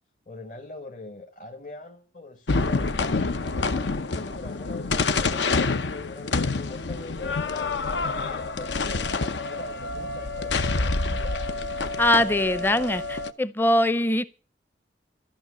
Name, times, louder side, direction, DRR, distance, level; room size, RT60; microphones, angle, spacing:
voice 1, 0.3-11.5, left 2 dB, 45° left, 1.3 m, -42 dB
sound 1, 2.5-13.3, left 3 dB, 80° left, 0.8 m, -27 dB
voice 2, 12.0-14.2, left 1 dB, 10° left, 0.6 m, -22 dB
14.0 x 6.4 x 9.5 m
head